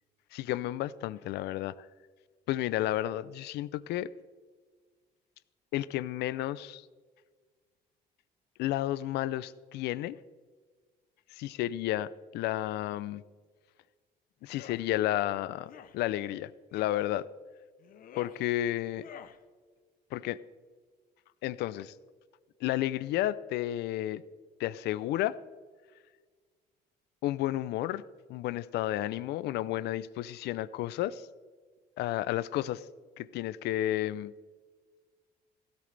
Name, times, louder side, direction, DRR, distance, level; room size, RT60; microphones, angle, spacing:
voice 1, 0.3-1.9 2.5-4.1 5.7-6.9 8.6-10.2 11.3-13.2 14.4-17.3 18.2-19.0 20.1-20.4 21.4-22.0 22.6-24.2 24.6-25.4 27.2-28.0 28.3-31.3 32.0-32.9 33.2-34.3, left 14 dB, 80° left, 17 dB, 0.5 m, -32 dB
sound 1, 14.4-14.8 15.6-16.0 16.7-17.0 17.8-18.4 18.9-19.4, left 9 dB, 55° left, 0.8 m, -49 dB
16.0 x 12.5 x 3.4 m, 1.5 s
cardioid pair, 110°, 17 cm